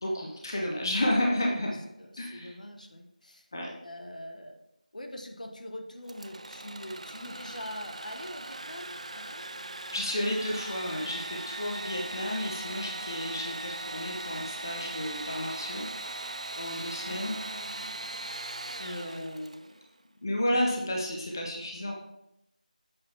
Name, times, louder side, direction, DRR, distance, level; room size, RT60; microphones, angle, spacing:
voice 1, 0.0-1.7 2.2-2.5 3.5-3.7 9.9-15.9 16.6-17.4 18.8-19.7 20.2-21.9, left 1 dB, 25° left, -1 dB, 0.7 m, -31 dB
voice 2, 0.9-3.5 3.8-4.6 4.9-9.4 17.0-18.3, left 1 dB, 60° left, 4 dB, 1.0 m, -44 dB
Engine / Sawing, 6.1-19.8, right 2 dB, 50° right, 0.4 m, -39 dB
7.6 x 4.0 x 4.5 m, 0.82 s
figure-of-eight pair, 175°, 5 cm